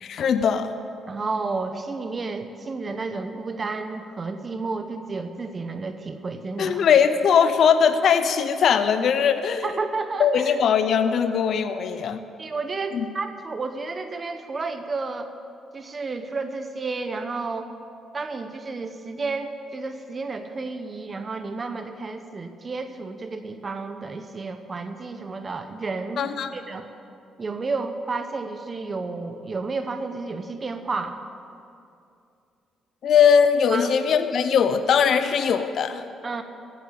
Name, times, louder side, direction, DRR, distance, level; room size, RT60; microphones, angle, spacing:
voice 1, 0.0-0.7 6.6-9.7 10.2-12.2 12.9-13.1 26.2-26.5 33.0-36.0, left 7 dB, 65° left, 10 dB, 0.7 m, -20 dB
voice 2, 1.1-6.8 9.6-10.6 12.4-15.3 15.7-17.7 18.1-26.9 27.4-31.2 33.7-33.9 36.2-36.4, right 3 dB, 35° right, 7 dB, 0.9 m, -31 dB
15.0 x 8.3 x 8.5 m, 2.6 s
cardioid pair, 90°, 0 cm